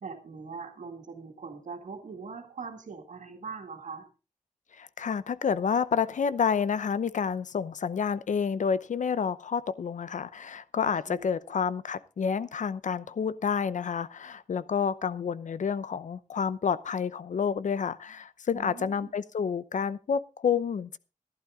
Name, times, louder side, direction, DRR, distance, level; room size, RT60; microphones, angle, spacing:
voice 1, 0.0-4.1 11.1-11.4 18.5-19.1, right 5 dB, 85° right, 2.1 m, -42 dB
voice 2, 4.7-21.0, left 6 dB, 80° left, 0.7 m, -29 dB
14.5 x 12.0 x 3.7 m
wide cardioid pair, 140°, 13 cm